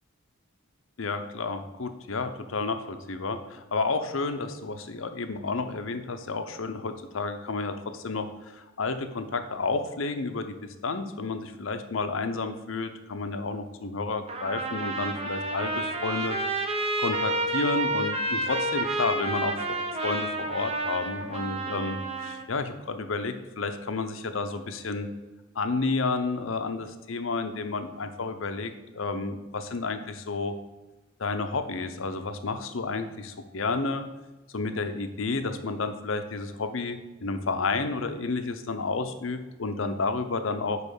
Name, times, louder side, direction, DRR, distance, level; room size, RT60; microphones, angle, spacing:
voice 1, 1.0-10.6 10.8-16.4 16.8-19.6 20.0-25.1 25.5-30.5 31.2-34.0 34.5-40.8, left 3 dB, 70° left, 8 dB, 0.7 m, -31 dB
Trumpet, 14.3-22.4, right 2 dB, 30° right, 0.9 m, -30 dB
5.4 x 4.9 x 6.4 m, 1.1 s
head